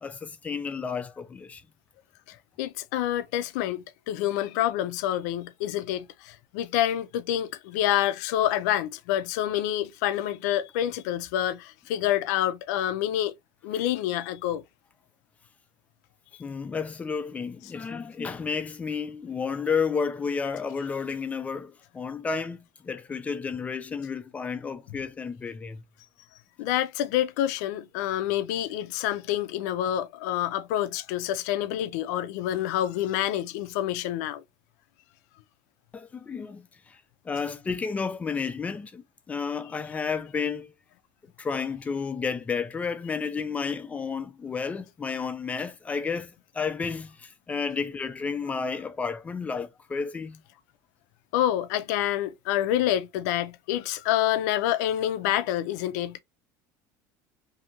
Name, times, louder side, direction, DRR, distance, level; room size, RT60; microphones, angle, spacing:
voice 1, 0.0-1.6 16.4-22.6 22.8-25.8 35.9-37.0 37.2-40.7 41.4-50.4, left 5 dB, 15° left, 0.4 m, -31 dB
voice 2, 2.3-13.3 13.6-14.6 26.6-34.4 51.3-56.2, left 12 dB, 85° left, 0.4 m, -27 dB
2.7 x 2.4 x 2.8 m
cardioid pair, 145°, 9 cm